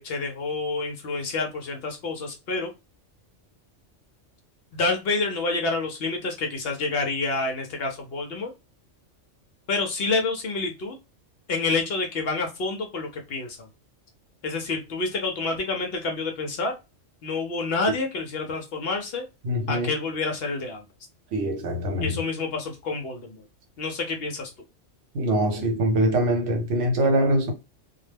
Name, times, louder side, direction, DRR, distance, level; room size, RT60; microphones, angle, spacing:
voice 1, 0.0-2.7 4.7-8.5 9.7-10.9 11.5-13.6 14.4-16.7 17.2-19.2 19.7-20.8 22.0-23.4 23.8-24.5, left 3 dB, 60° left, 0.7 m, -28 dB
voice 2, 19.4-19.9 21.3-22.2 25.1-27.5, right 1 dB, 75° right, 1.1 m, -23 dB
2.2 x 2.1 x 3.2 m
omnidirectional pair, 1.3 m